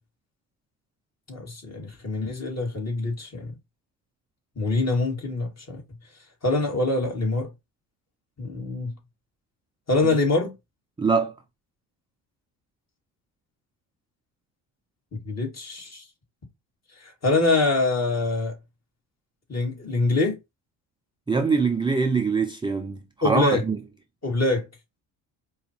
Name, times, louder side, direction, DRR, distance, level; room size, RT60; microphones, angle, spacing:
voice 1, 1.3-3.5 4.6-5.8 6.4-7.5 8.4-8.9 9.9-10.5 15.1-16.0 17.0-18.5 19.5-20.4 23.2-23.6 24.2-24.7, left 2 dB, 35° left, 2.1 m, -24 dB
voice 2, 11.0-11.3 21.3-23.0 23.2-23.8, right 4 dB, 10° right, 0.5 m, -23 dB
4.8 x 2.4 x 3.0 m
hypercardioid pair, 65°, 47 cm